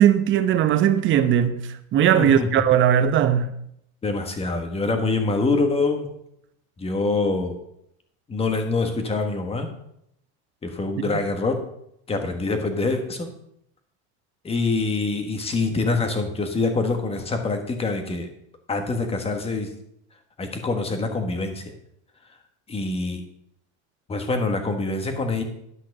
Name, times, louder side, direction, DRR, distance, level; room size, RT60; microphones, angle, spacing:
voice 1, 0.0-1.6 1.9-3.5, right 9 dB, 35° right, 0.8 m, -18 dB
voice 2, 2.1-2.5 4.0-6.1 6.8-7.5 8.3-9.7 10.6-11.6 12.1-13.3 14.4-18.3 18.7-19.7 20.4-21.7 22.7-23.2 24.1-25.4, left 3 dB, 15° left, 1.5 m, -25 dB
11.0 x 6.0 x 6.0 m
supercardioid pair, 140°, 34 cm